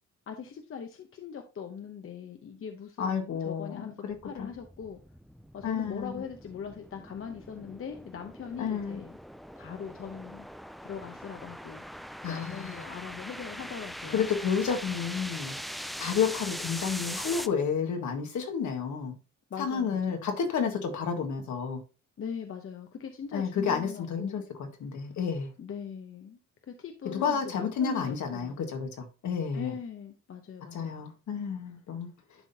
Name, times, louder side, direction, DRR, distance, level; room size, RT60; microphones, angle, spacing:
voice 1, 0.3-4.0 4.2-5.0 5.5-9.1 9.6-10.5 10.8-11.8 12.3-14.3 19.5-20.3 22.2-24.5 25.6-26.4 26.7-28.6 29.5-31.0, left 7 dB, 45° left, 0.9 m, -41 dB
voice 2, 3.0-4.5 5.6-6.2 8.6-9.0 12.2-12.8 14.1-15.6 16.0-19.1 19.6-21.8 23.3-25.5 27.0-29.7 30.7-32.1, left 6 dB, 70° left, 1.6 m, -31 dB
sound 1, 4.1-17.5, equal, ahead, 0.3 m, -42 dB
11.0 x 3.8 x 2.8 m
cardioid pair, 90°, 30 cm